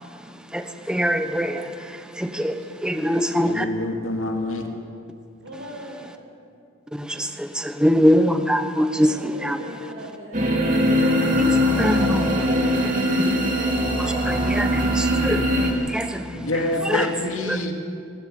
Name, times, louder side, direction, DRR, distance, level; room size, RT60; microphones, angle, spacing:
voice 1, 0.5-1.7 2.2-2.6 2.8-3.7 6.9-9.6 11.4-12.5 14.0-16.5 16.9-17.1 17.5-17.6, equal, 5° right, 7 dB, 0.9 m, -23 dB
voice 2, 3.4-4.7 16.3-17.7, left 2 dB, 90° left, 2 dB, 2.4 m, -26 dB
voice 3, 5.4-6.0 9.0-11.2 11.4-13.4, right 1 dB, 85° right, 1 dB, 5.6 m, -40 dB
sound 1, 10.3-15.7, equal, 40° right, 2.8 m, -21 dB
22.0 x 13.0 x 9.8 m, 2.4 s
head